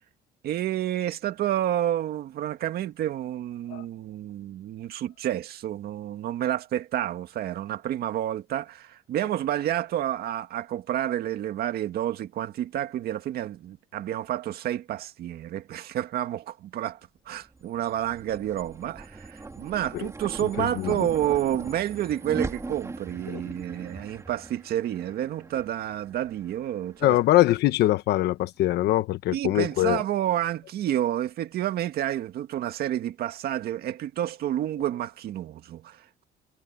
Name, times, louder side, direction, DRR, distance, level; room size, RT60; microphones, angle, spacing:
voice 1, 0.4-17.0 17.3-27.2 29.3-36.2, right 12 dB, 65° right, 2.0 m, -29 dB
sound 1, 17.4-27.9, right 3 dB, 15° right, 3.0 m, -40 dB
voice 2, 20.6-21.1 27.0-30.0, left 15 dB, 75° left, 1.3 m, -23 dB
cardioid pair, 110°, 17 cm